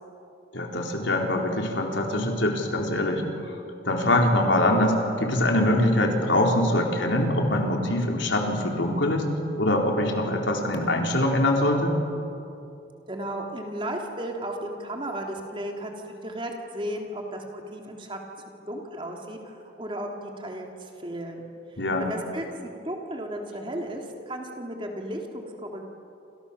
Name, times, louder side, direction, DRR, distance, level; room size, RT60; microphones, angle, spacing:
voice 1, 0.5-3.5 3.8-9.3 9.6-12.0 21.8-22.1, left 1 dB, 80° left, 1 dB, 4.2 m, -23 dB
voice 2, 13.1-18.2 18.7-21.4 22.0-25.9, right 1 dB, 25° right, 1 dB, 3.3 m, -34 dB
28.5 x 28.0 x 7.2 m, 2.7 s
head